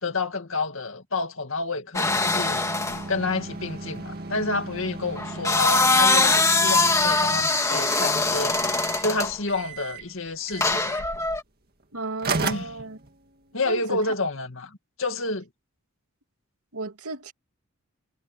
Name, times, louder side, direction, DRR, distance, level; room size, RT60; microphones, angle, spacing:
voice 1, 0.0-2.6 3.1-8.6 9.0-11.0 12.4-12.7 13.5-15.5, left 3 dB, 65° left, 2.2 m, -29 dB
sound 1, 1.9-3.0 5.2-9.3 10.6-11.4, left 3 dB, 15° left, 2.0 m, -22 dB
sound 2, 2.0-8.1 8.5-9.1 9.5-10.1 10.5-11.0 11.8-11.9 12.2-13.5, right 3 dB, 45° right, 2.1 m, -35 dB
voice 2, 11.9-13.0 13.7-14.0 16.7-17.3, right 3 dB, 85° right, 2.5 m, -34 dB
head